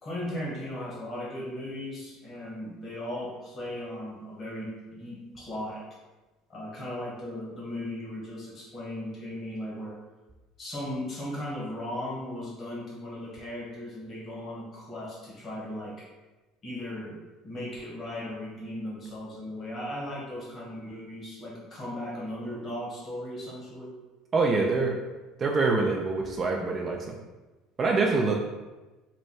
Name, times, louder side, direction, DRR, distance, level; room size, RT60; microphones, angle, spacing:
voice 1, 0.0-5.8 6.5-10.0 10.6-16.1 16.6-17.2 17.4-23.9, left 1 dB, 30° left, -5 dB, 1.2 m, -37 dB
voice 2, 24.3-25.0 25.4-27.1 27.8-28.3, right 3 dB, 25° right, 0 dB, 0.3 m, -25 dB
3.2 x 2.2 x 4.1 m, 1.2 s
cardioid pair, 145°, 0 cm